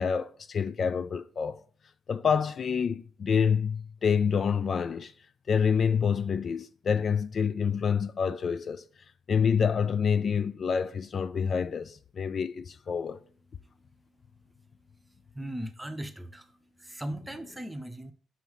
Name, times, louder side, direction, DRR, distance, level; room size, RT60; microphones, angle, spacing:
voice 1, 0.0-1.6 2.1-5.1 5.5-8.8 9.3-13.2, left 6 dB, 50° left, 0.3 m, -27 dB
voice 2, 15.3-18.1, right 1 dB, 10° right, 0.7 m, -38 dB
5.6 x 3.1 x 5.4 m
cardioid pair, 90°, 0 cm